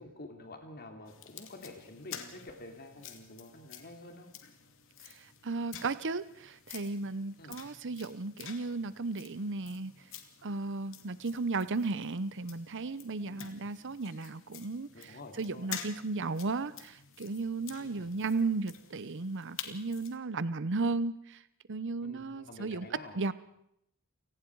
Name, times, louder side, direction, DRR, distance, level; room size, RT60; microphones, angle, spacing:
voice 1, 0.0-4.3 7.4-7.7 11.1-11.2 13.3-13.6 14.9-15.7 17.8-18.1 22.0-23.2, left 2 dB, 45° left, 5 dB, 2.9 m, -49 dB
sound 1, 1.0-20.2, left 9 dB, 65° left, 2.6 m, -49 dB
voice 2, 5.0-10.1 10.4-21.4 21.7-22.9 23.1-23.3, right 3 dB, 55° right, 15 dB, 0.8 m, -35 dB
29.5 x 18.5 x 4.7 m, 0.74 s
head